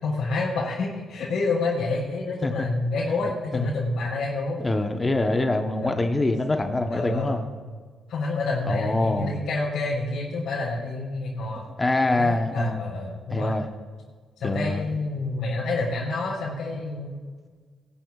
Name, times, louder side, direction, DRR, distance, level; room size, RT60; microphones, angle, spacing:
voice 1, 0.0-4.6 5.8-6.1 6.9-7.4 8.1-11.7 12.1-13.5 14.4-17.1, left 3 dB, 70° left, -8 dB, 3.8 m, -28 dB
voice 2, 4.6-7.5 8.7-9.4 11.8-12.8 13.3-13.7 14.4-14.9, left 2 dB, 20° left, 5 dB, 0.9 m, -24 dB
20.0 x 12.0 x 2.4 m, 1.5 s
cardioid pair, 90°, 0 cm